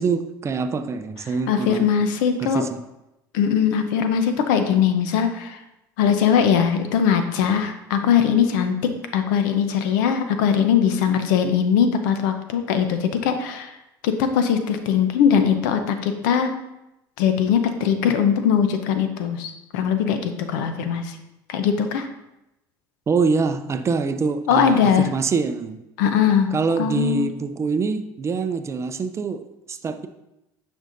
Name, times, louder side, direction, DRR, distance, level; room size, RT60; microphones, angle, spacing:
voice 1, 0.0-2.0 2.4-2.8 23.1-25.8 26.5-30.1, right 5 dB, 30° right, 10 dB, 0.5 m, -25 dB
voice 2, 1.5-2.6 3.3-5.6 6.0-13.7 14.0-16.6 17.2-21.2 21.5-22.1 24.5-25.1 26.0-26.5 26.8-27.3, left 7 dB, 85° left, 8 dB, 0.7 m, -20 dB
8.9 x 5.4 x 2.6 m, 0.90 s
supercardioid pair, 100°, 10 cm